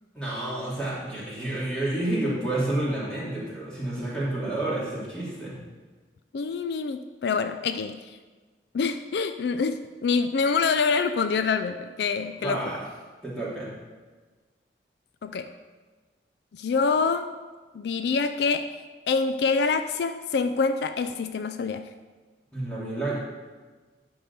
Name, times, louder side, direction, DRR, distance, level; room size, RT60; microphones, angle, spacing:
voice 1, 0.1-5.6 12.4-12.8 13.2-13.7 22.5-23.2, right 1 dB, 5° left, -8 dB, 2.8 m, -29 dB
voice 2, 6.3-8.0 8.7-12.6 15.2-15.5 16.5-17.3 17.7-18.8 19.1-21.9, left 5 dB, 70° left, 9 dB, 0.4 m, -26 dB
11.0 x 3.9 x 6.8 m, 1.4 s
head